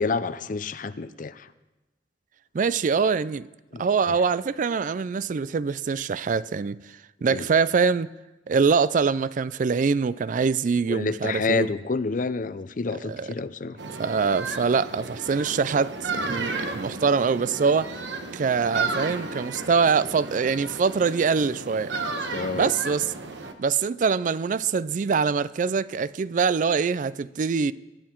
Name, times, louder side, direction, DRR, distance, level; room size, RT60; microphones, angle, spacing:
voice 1, 0.0-1.5 3.7-3.9 7.3-7.5 10.9-13.8 22.3-22.7, left 4 dB, 50° left, 0.6 m, -28 dB
voice 2, 2.5-3.5 3.8-6.8 7.2-8.1 8.5-11.7 13.0-13.3 14.0-17.9 18.3-22.1 22.5-23.1 23.6-27.7, right 5 dB, 45° right, 0.4 m, -24 dB
sound 1, 13.8-23.5, right 3 dB, 90° right, 1.2 m, -33 dB
22.5 x 9.3 x 4.5 m
head